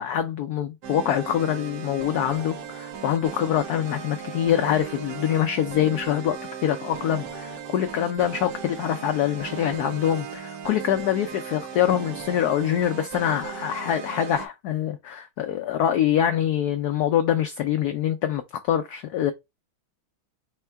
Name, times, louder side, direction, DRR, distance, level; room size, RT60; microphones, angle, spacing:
voice 1, 0.0-19.3, left 10 dB, 80° left, 0.8 m, -25 dB
sound 1, 0.8-14.5, right 7 dB, 65° right, 1.3 m, -37 dB
4.5 x 2.2 x 4.4 m
omnidirectional pair, 2.2 m